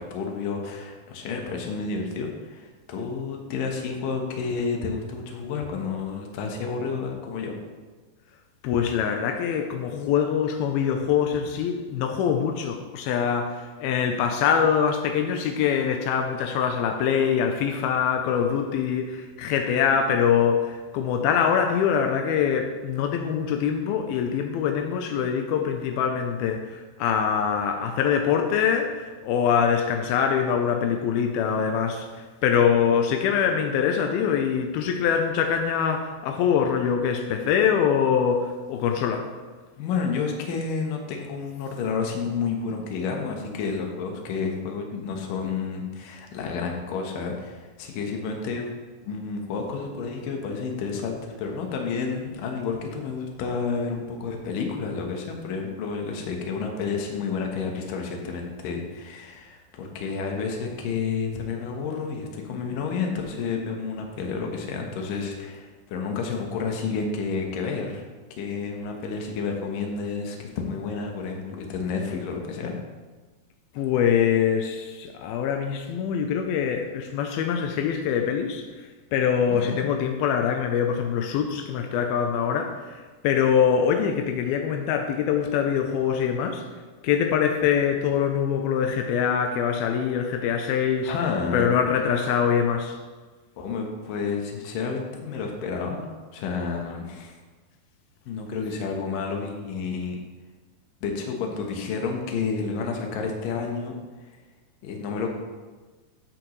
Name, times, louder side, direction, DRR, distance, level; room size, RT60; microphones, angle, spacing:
voice 1, 0.0-7.5 39.7-48.7 49.0-68.0 68.4-72.7 79.5-79.8 91.1-91.7 93.6-96.0 96.3-97.4 98.3-100.2 101.0-103.9 104.8-105.3, left 5 dB, 65° left, 2 dB, 2.4 m, -30 dB
voice 2, 8.6-39.3 73.8-78.6 79.1-86.6 87.0-91.1 91.5-93.0, left 7 dB, 90° left, 4 dB, 2.2 m, -24 dB
13.0 x 7.9 x 3.2 m, 1.3 s
omnidirectional pair, 5.1 m